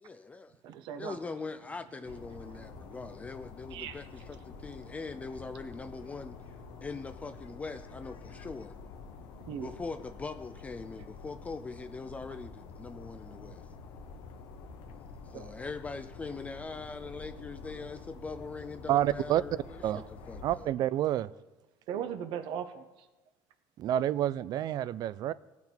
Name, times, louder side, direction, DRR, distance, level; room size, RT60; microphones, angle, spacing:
voice 1, 0.0-0.5 1.0-6.4 6.8-8.7 9.6-13.6 15.2-20.7, left 4 dB, 15° left, 9 dB, 0.3 m, -42 dB
voice 2, 0.6-1.2 2.4-3.0 3.7-4.1 4.8-4.9 6.7-6.9 9.4-9.7 11.0-11.1 15.3-15.5 21.9-22.8, right 9 dB, 75° right, 9 dB, 0.9 m, -39 dB
sound 1, 2.0-20.7, left 4 dB, 85° left, 1.0 m, -48 dB
voice 3, 18.9-19.4 19.8-20.0 20.4-21.3 23.8-25.3, right 12 dB, 55° right, 18 dB, 0.4 m, -28 dB
17.5 x 5.8 x 4.5 m, 1.1 s
cardioid pair, 145°, 8 cm